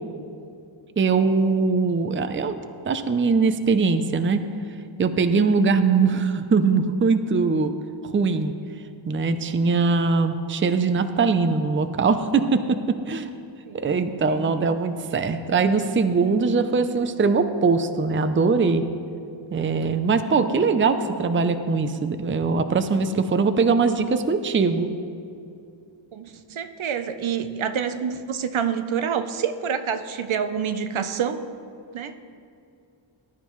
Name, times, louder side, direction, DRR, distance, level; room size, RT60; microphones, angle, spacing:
voice 1, 1.0-2.6 2.9-4.4 5.0-7.7 8.0-8.5 9.1-13.4 13.8-18.8 19.5-24.9, right 4 dB, 25° right, 9 dB, 0.5 m, -21 dB
voice 2, 13.7-14.6 26.1-31.5 31.9-32.2, right 7 dB, 80° right, 9 dB, 0.8 m, -28 dB
19.5 x 11.5 x 3.1 m, 2.5 s
wide cardioid pair, 160°, 47 cm